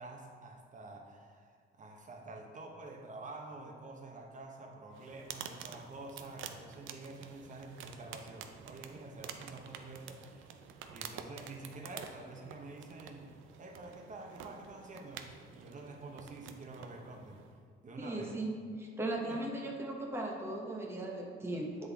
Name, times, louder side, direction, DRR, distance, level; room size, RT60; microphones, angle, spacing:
voice 1, 0.0-10.5 10.9-13.3 13.6-17.4 17.8-18.4 19.3-19.4, right 2 dB, 40° right, 2 dB, 1.0 m, -48 dB
sound 1, 4.9-17.6, right 8 dB, 85° right, 0.5 m, -49 dB
voice 2, 18.0-21.9, right 1 dB, 10° right, -1 dB, 1.0 m, -38 dB
7.8 x 3.8 x 3.5 m, 2.1 s
cardioid pair, 90°, 20 cm